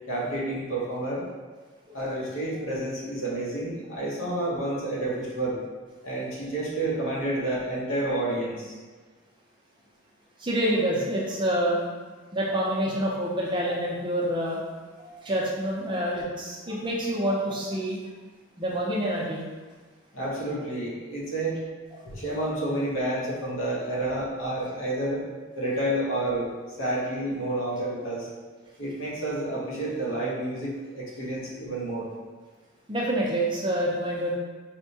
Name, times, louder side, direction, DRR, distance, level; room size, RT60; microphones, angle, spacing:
voice 1, 0.1-1.3 1.9-5.6 6.0-8.8 20.1-21.6 22.0-25.2 25.6-28.3 28.8-32.1, right 1 dB, 75° left, -5 dB, 0.9 m, -29 dB
voice 2, 10.4-11.8 12.3-14.6 15.0-18.0 18.6-19.5 21.9-22.0 32.9-34.4, right 1 dB, 20° right, -4 dB, 0.4 m, -27 dB
4.4 x 2.1 x 2.7 m, 1.4 s
head